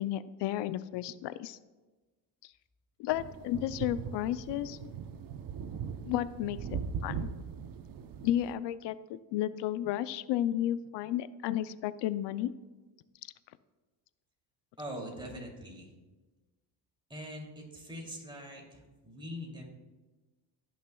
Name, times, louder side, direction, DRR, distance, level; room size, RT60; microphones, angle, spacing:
voice 1, 0.0-1.6 3.0-4.8 6.1-7.3 8.2-12.5, left 12 dB, 60° left, 15 dB, 0.5 m, -33 dB
sound 1, 3.1-8.6, right 6 dB, 45° right, 0.7 m, -40 dB
voice 2, 14.8-15.9 17.1-19.6, equal, 10° right, -1 dB, 2.6 m, -43 dB
16.5 x 6.4 x 2.3 m, 1.2 s
supercardioid pair, 90°, 50 cm